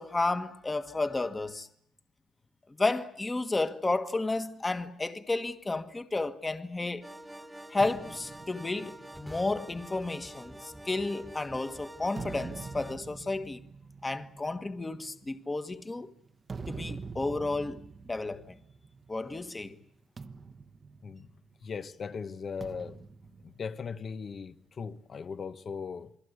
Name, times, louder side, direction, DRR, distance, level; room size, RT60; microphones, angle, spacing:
voice 1, 0.0-1.7 2.8-7.0 7.7-13.6 14.0-16.1 16.7-17.8 18.1-18.6 19.1-19.7, left 2 dB, 20° left, 1.6 m, -32 dB
sound 1, 7.0-12.9, right 1 dB, 5° right, 1.7 m, -47 dB
sound 2, 7.8-11.4 11.9-19.3 19.6-19.8 20.2-21.8 22.6-24.4, right 4 dB, 35° right, 1.2 m, -45 dB
voice 2, 21.6-23.0 23.4-26.2, left 5 dB, 45° left, 1.3 m, -38 dB
28.5 x 21.5 x 8.3 m
cardioid pair, 90°, 0 cm